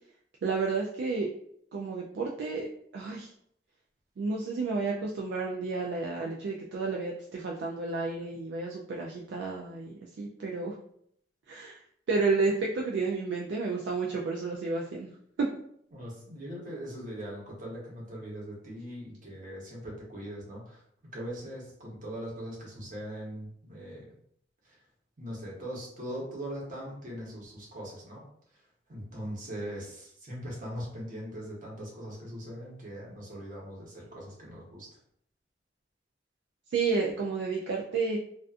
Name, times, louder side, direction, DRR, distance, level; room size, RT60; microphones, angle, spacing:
voice 1, 0.4-1.3 1.7-2.7 2.9-3.3 4.2-10.7 11.5-11.8 12.1-15.1 15.4-15.6 36.7-38.2, right 4 dB, 65° right, -1 dB, 0.3 m, -31 dB
voice 2, 15.9-20.8 21.1-24.2 24.6-24.8 25.2-28.2 28.9-34.9, equal, 45° right, -3 dB, 0.9 m, -40 dB
2.4 x 2.3 x 2.4 m, 0.68 s
head